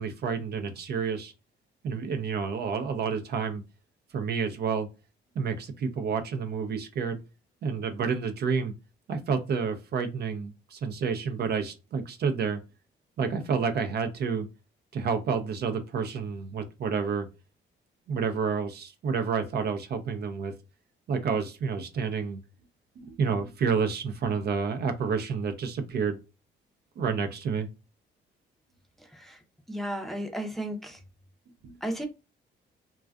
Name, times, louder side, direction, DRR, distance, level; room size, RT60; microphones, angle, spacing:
voice 1, 0.0-1.3 1.8-3.6 4.1-4.9 5.4-7.2 7.6-8.7 9.1-12.6 13.2-14.5 14.9-17.3 18.1-20.5 21.1-22.4 23.0-26.2 27.0-27.7 31.6-31.7, right 5 dB, 55° right, 0.5 m, -29 dB
voice 2, 29.0-29.4 29.7-31.0 31.8-32.0, right 1 dB, ahead, 0.5 m, -34 dB
2.4 x 2.3 x 2.2 m
cardioid pair, 90°, 20 cm